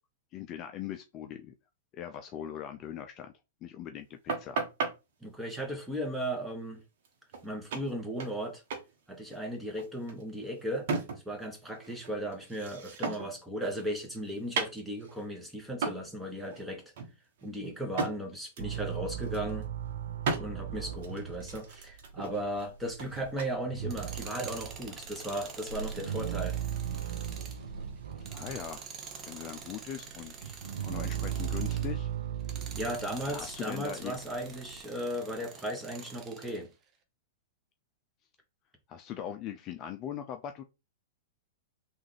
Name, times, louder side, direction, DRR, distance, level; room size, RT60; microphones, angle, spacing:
voice 1, 0.3-1.5 1.9-3.3 3.6-4.6 28.3-28.8 29.2-32.1 33.2-34.2 38.9-40.6, left 10 dB, 35° left, 0.4 m, -40 dB
sound 1, 4.3-4.9 7.0-7.1 7.3-7.5 7.7-8.4 8.7-8.9 9.2-11.4 11.7-13.4 13.8-15.2 15.8-16.1 16.4-16.6 17.0-18.2 18.6-18.8 19.1-19.6 20.2-20.5 21.0-23.5, right 4 dB, 60° right, 1.0 m, -36 dB
voice 2, 5.2-6.8 7.4-8.6 9.1-10.9 11.2-16.8 17.4-19.7 20.4-26.6 32.7-36.7, equal, 5° right, 1.0 m, -36 dB
sound 2, 18.6-28.8 29.1-34.8, right 9 dB, 80° right, 0.6 m, -37 dB
Tools, 23.8-32.0 32.4-36.6, right 5 dB, 30° right, 0.7 m, -47 dB
3.5 x 2.5 x 3.2 m
hypercardioid pair, 115°, 0 cm